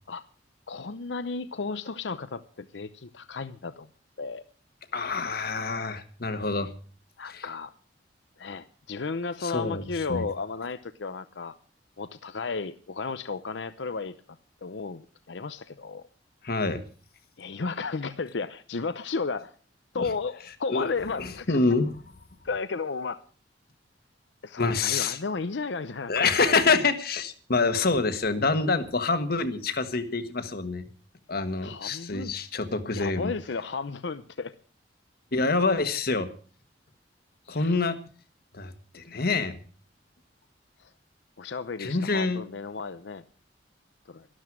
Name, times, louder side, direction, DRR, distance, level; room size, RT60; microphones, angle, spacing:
voice 1, 0.7-3.9 4.2-4.4 7.2-7.7 8.4-11.5 12.0-14.2 14.6-16.0 17.4-19.5 19.9-21.6 22.4-23.2 24.4-26.3 31.6-32.3 32.9-34.5 37.5-37.7 41.4-43.2 44.1-44.3, left 4 dB, 70° left, 13 dB, 0.7 m, -33 dB
voice 2, 4.9-6.7 7.3-7.4 9.4-10.3 16.4-16.8 19.9-20.1 20.7-20.9 21.2-21.9 24.6-25.2 26.1-30.9 31.3-33.3 35.3-36.3 37.5-38.0 38.5-39.6 41.8-42.4, left 3 dB, 55° left, 10 dB, 1.5 m, -26 dB
12.5 x 12.5 x 6.1 m, 0.41 s
head